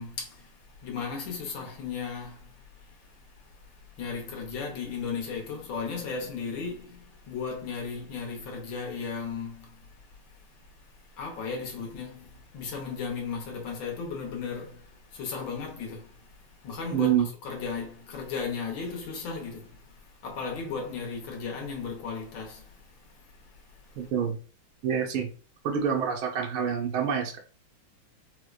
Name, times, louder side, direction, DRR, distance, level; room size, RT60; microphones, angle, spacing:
voice 1, 0.0-24.1, left 5 dB, 70° left, 1.5 m, -36 dB
voice 2, 16.9-17.3 24.0-24.4 24.8-25.3 25.6-27.4, right 8 dB, 85° right, 0.8 m, -27 dB
4.3 x 2.1 x 2.4 m
omnidirectional pair, 2.3 m